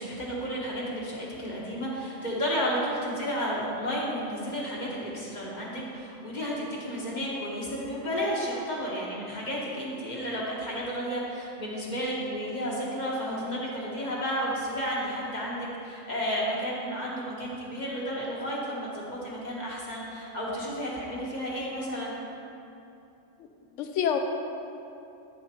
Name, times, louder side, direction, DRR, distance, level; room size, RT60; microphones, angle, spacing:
voice 1, 0.0-22.1, equal, 40° left, -4 dB, 1.3 m, -32 dB
voice 2, 23.8-24.2, left 8 dB, 85° left, 5 dB, 1.0 m, -28 dB
8.6 x 7.3 x 2.9 m, 2.7 s
omnidirectional pair, 1.2 m